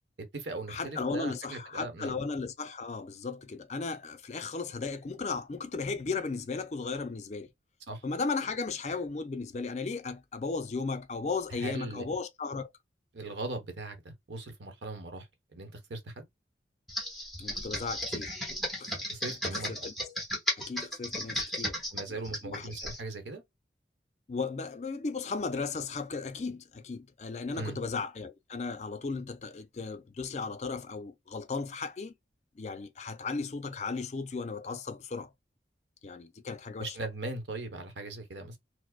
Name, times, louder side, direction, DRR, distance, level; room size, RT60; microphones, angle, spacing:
voice 1, 0.2-2.1 7.9-8.0 11.5-12.0 13.1-15.3 15.5-16.3 19.1-19.7 21.9-23.4 27.5-27.8 36.8-38.6, right 2 dB, 85° right, 0.9 m, -39 dB
voice 2, 0.7-7.5 8.0-12.7 17.4-18.4 18.8-19.0 19.5-19.9 20.6-21.8 22.1-22.2 22.5-22.7 24.3-32.1 32.6-35.3 36.0-37.0, left 4 dB, 40° left, 0.4 m, -35 dB
Computer keyboard, 16.9-23.0, left 1 dB, ahead, 1.1 m, -35 dB
4.7 x 2.0 x 2.2 m
head